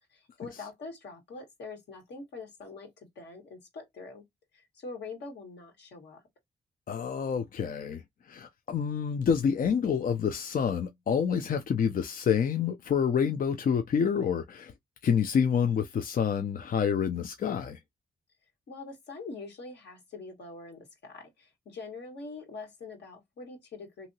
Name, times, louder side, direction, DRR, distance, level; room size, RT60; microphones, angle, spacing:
voice 1, 0.1-4.2 4.5-6.2 18.7-24.1, left 3 dB, 80° left, 1.6 m, -44 dB
voice 2, 6.9-8.0 8.3-14.7 15.0-17.8, left 7 dB, 55° left, 0.5 m, -28 dB
2.8 x 2.7 x 2.7 m
cardioid pair, 65°, 18 cm